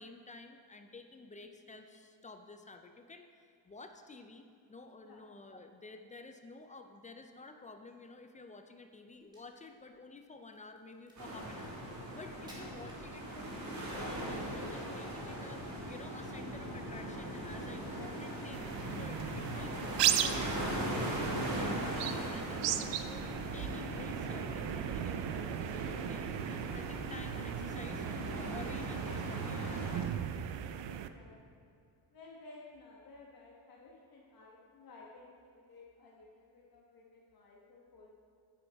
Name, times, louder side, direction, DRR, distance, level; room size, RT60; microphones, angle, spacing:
voice 1, 0.0-3.3 3.7-28.0 28.3-30.3, left 3 dB, 20° left, 6 dB, 0.3 m, -51 dB
Crack, 9.1-13.7, equal, 10° right, 1.7 m, -59 dB
sound 1, 11.2-30.0, equal, 35° right, 1.9 m, -40 dB
sound 2, 18.5-31.1, right 10 dB, 70° right, 0.5 m, -37 dB
voice 2, 30.8-31.7 32.1-38.1, left 3 dB, 50° left, -3 dB, 1.2 m, -56 dB
9.2 x 9.0 x 3.4 m, 2.4 s
cardioid pair, 145°, 46 cm